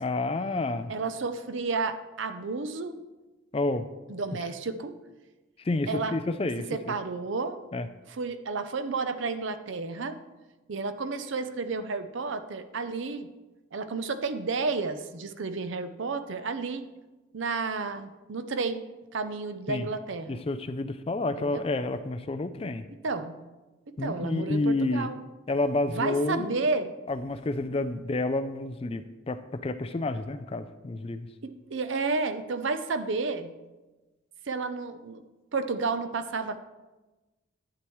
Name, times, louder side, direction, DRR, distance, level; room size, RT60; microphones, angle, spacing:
voice 1, 0.0-0.9 3.5-3.8 5.6-6.9 7.7-7.9 19.7-19.9 20.3-22.8 24.0-25.1 25.5-26.6 27.1-31.3, left 2 dB, 30° left, 11 dB, 0.3 m, -29 dB
voice 2, 0.9-2.9 4.1-4.9 5.9-6.1 6.7-7.6 8.1-10.1 10.7-13.3 13.7-16.9 17.3-18.8 19.1-20.4 21.4-21.6 23.0-23.3 23.9-25.2 25.9-26.9 31.4-33.5 34.5-35.2 35.5-36.6, right 4 dB, 65° right, 10 dB, 0.6 m, -31 dB
11.5 x 8.5 x 3.1 m, 1.2 s
head